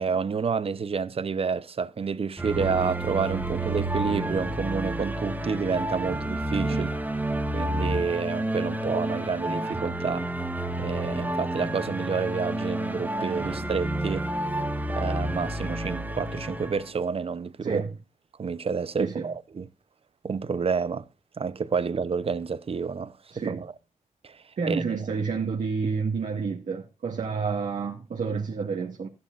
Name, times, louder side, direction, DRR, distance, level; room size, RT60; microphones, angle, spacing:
voice 1, 0.0-6.9 7.5-10.3 10.8-14.3 14.9-17.8 18.4-19.7 20.2-21.0 21.4-23.1 23.5-23.7 24.2-24.4 24.7-25.0, right 5 dB, 50° right, 0.8 m, -29 dB
sound 1, 2.4-16.9, right 1 dB, 15° right, 1.6 m, -30 dB
voice 2, 17.6-17.9 19.0-19.3 23.3-23.7 24.6-29.1, right 5 dB, 75° right, 2.0 m, -29 dB
14.5 x 11.5 x 2.5 m
wide cardioid pair, 100°, 13 cm